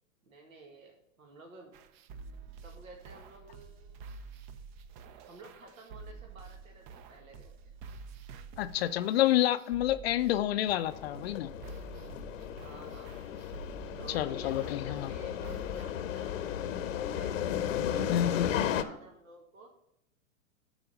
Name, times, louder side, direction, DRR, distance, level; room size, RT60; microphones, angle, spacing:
voice 1, 0.2-1.8 2.6-4.1 5.1-7.5 12.6-13.2 14.0-17.4 17.9-19.7, right 2 dB, 80° right, 1.8 m, -52 dB
sound 1, 1.7-15.8, right 4 dB, 35° right, 0.6 m, -49 dB
voice 2, 8.6-11.5 14.1-15.1 18.1-18.6, left 13 dB, 50° left, 0.5 m, -28 dB
sound 2, 10.9-18.8, left 9 dB, 70° left, 0.8 m, -35 dB
11.0 x 4.0 x 5.1 m
hypercardioid pair, 115°, 40 cm